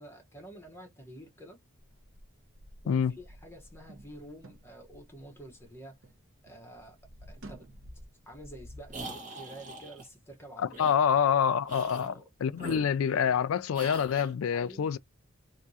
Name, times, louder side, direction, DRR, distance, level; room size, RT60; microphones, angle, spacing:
voice 1, 0.0-1.6 2.8-6.0 6.4-7.7 8.3-10.9 11.7-12.3 12.7-12.8 14.5-14.9, right 1 dB, 10° left, 1.1 m, -49 dB
sound 1, 1.8-6.2 6.5-9.0, equal, 60° right, 0.9 m, -51 dB
sound 2, 8.9-10.1 10.7-11.0 11.6-12.1 12.5-13.4 13.7-14.3, right 2 dB, 35° right, 1.3 m, -43 dB
voice 2, 10.8-12.1 12.4-15.0, left 7 dB, 70° left, 0.3 m, -26 dB
3.5 x 2.7 x 2.7 m
head